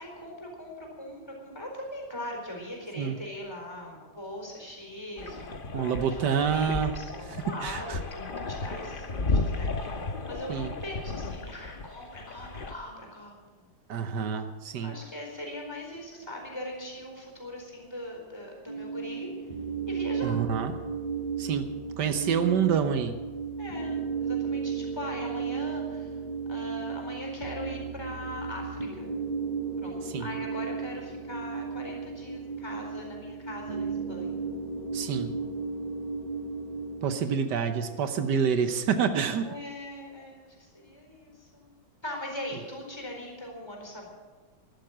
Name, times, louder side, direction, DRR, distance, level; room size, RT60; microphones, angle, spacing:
voice 1, 0.0-13.7 14.3-14.4 14.8-19.5 19.9-20.4 23.6-26.2 26.5-29.1 29.8-34.6 35.0-35.1 39.4-41.7 42.0-44.1, left 1 dB, 15° left, 0 dB, 4.3 m, -41 dB
sound 1, 5.2-12.7, left 3 dB, 35° left, 1.1 m, -34 dB
voice 2, 5.7-7.0 7.6-8.0 10.5-10.7 13.9-15.0 20.2-20.7 21.4-21.7 22.0-23.2 30.1-30.3 34.9-35.4 37.0-39.4, right 7 dB, 85° right, 8 dB, 1.6 m, -27 dB
sound 2, 18.7-37.2, right 5 dB, 30° right, 0.9 m, -34 dB
13.5 x 12.0 x 7.6 m, 1.4 s
omnidirectional pair, 1.8 m